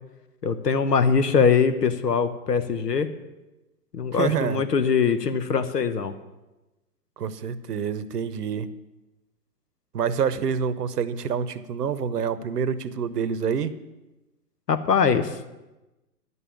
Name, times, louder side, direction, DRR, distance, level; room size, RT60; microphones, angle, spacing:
voice 1, 0.4-3.1 3.9-6.2 14.7-15.4, left 6 dB, 90° left, 11 dB, 1.1 m, -22 dB
voice 2, 4.1-4.6 7.2-8.7 9.9-13.7, right 7 dB, 80° right, 14 dB, 0.9 m, -27 dB
11.0 x 5.6 x 8.5 m, 1.0 s
hypercardioid pair, 140°, 47 cm